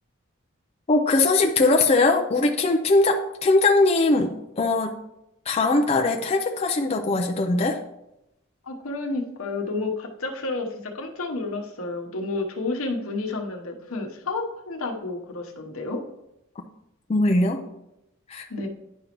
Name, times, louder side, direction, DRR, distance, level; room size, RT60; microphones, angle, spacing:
voice 1, 0.9-5.0 5.5-7.8 17.1-17.6 18.3-18.4, left 2 dB, 30° left, 2 dB, 0.5 m, -21 dB
voice 2, 8.7-16.0 18.5-18.7, left 3 dB, 80° left, 3 dB, 1.0 m, -30 dB
10.0 x 5.1 x 3.0 m, 0.87 s
head